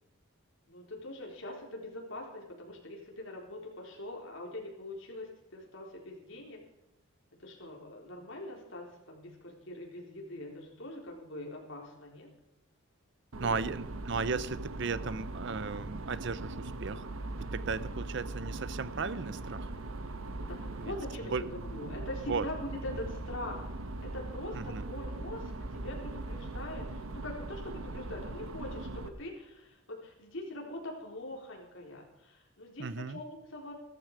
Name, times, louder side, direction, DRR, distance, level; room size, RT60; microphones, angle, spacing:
voice 1, 0.7-6.6 7.4-12.3 13.4-13.5 20.4-23.7 24.0-33.7, left 1 dB, 65° left, -1 dB, 4.1 m, -43 dB
sound 1, 13.3-29.1, right 2 dB, 80° right, 1.1 m, -40 dB
voice 2, 13.4-17.1 17.4-19.7 20.8-20.9 21.3-21.4 22.3-22.5 24.5-24.9 32.8-33.2, right 4 dB, 55° right, 15 dB, 0.6 m, -35 dB
16.0 x 13.0 x 4.9 m, 0.90 s
head